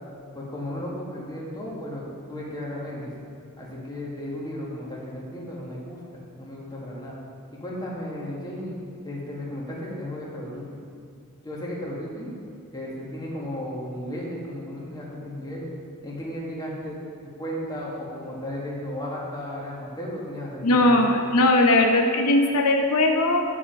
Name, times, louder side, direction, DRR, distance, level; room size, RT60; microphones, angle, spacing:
voice 1, 0.3-3.1 3.6-7.1 7.6-8.8 9.0-10.7 11.4-12.3 12.7-15.7 16.0-17.0 17.4-21.1, left 1 dB, 20° left, -5 dB, 1.7 m, -34 dB
voice 2, 20.6-23.4, left 2 dB, 85° left, 2 dB, 0.8 m, -19 dB
9.8 x 4.9 x 5.9 m, 2.5 s
head